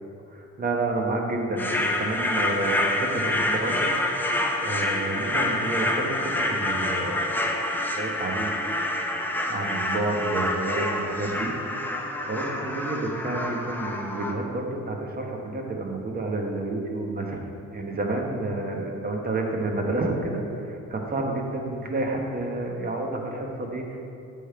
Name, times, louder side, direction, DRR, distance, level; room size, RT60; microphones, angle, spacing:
voice 1, 0.3-3.9 4.3-8.9 9.5-11.5 11.8-12.0 12.3-17.4 17.7-24.0, right 2 dB, 30° right, 1 dB, 1.2 m, -30 dB
sound 1, 1.6-14.3, left 1 dB, 5° left, 0.7 m, -27 dB
8.2 x 3.8 x 5.7 m, 2.6 s
cardioid pair, 90°, 30 cm